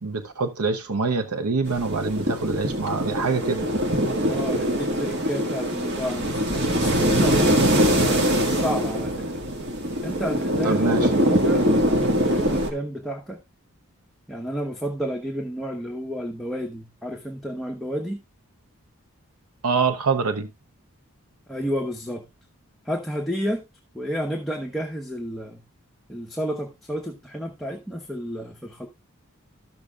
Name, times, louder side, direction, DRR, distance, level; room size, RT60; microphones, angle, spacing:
voice 1, 0.0-3.7 10.6-11.2 19.6-20.5, right 4 dB, 85° right, 0.8 m, -25 dB
sound 1, 1.6-12.7, equal, 50° right, 1.7 m, -23 dB
voice 2, 4.3-9.3 10.0-13.4 14.3-18.2 21.5-22.3 22.8-23.7 23.9-25.6 26.1-28.9, equal, ahead, 0.9 m, -31 dB
13.5 x 6.7 x 2.3 m
head